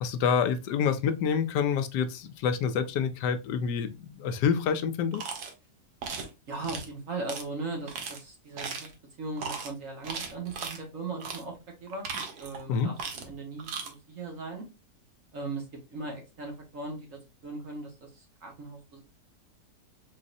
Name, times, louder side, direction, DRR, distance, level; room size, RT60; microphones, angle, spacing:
voice 1, 0.0-5.2 12.7-12.9, left 7 dB, 75° left, 1.2 m, -27 dB
sound 1, 5.1-5.5 6.0-6.3 6.6-6.9 7.3-7.4 7.9-8.2 8.6-8.9 9.4-9.7 10.0-10.8 11.2-11.4 11.9-12.6 13.0-13.3 13.6-13.9, right 5 dB, 65° right, 1.4 m, -37 dB
voice 2, 6.5-8.9 9.2-12.1 12.4-14.6 15.3-19.0, right 3 dB, 50° right, 1.7 m, -38 dB
4.0 x 3.9 x 2.5 m
omnidirectional pair, 1.9 m